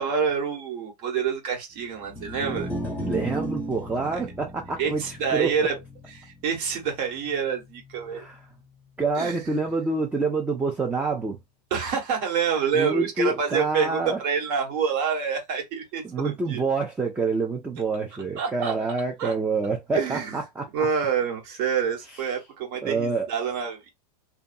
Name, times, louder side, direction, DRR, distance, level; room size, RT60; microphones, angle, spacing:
voice 1, 0.0-2.7 4.0-4.2 4.8-5.8 6.1-8.2 9.2-9.4 11.7-16.6 18.4-18.7 19.2-19.4 19.9-20.4 20.7-23.9, right 6 dB, 50° right, 1.3 m, -27 dB
sound 1, 2.0-8.4, equal, 10° left, 0.9 m, -36 dB
voice 2, 3.0-5.5 8.2-8.4 9.0-11.4 12.7-14.2 16.0-20.7 22.8-23.3, right 3 dB, 5° right, 0.4 m, -27 dB
2.6 x 2.3 x 2.5 m
supercardioid pair, 130°, 21 cm